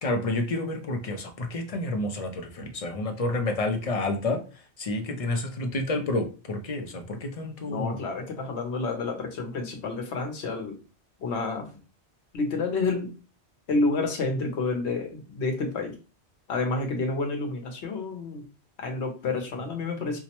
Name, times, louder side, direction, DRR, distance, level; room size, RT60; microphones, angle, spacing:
voice 1, 0.0-4.4 4.8-8.0, left 2 dB, 45° left, 5 dB, 0.5 m, -29 dB
voice 2, 7.7-10.8 11.2-11.8 12.3-13.1 13.7-16.0 16.5-18.4 18.8-20.2, left 3 dB, 75° left, 3 dB, 1.1 m, -29 dB
4.6 x 2.0 x 2.9 m, 0.34 s
omnidirectional pair, 1.1 m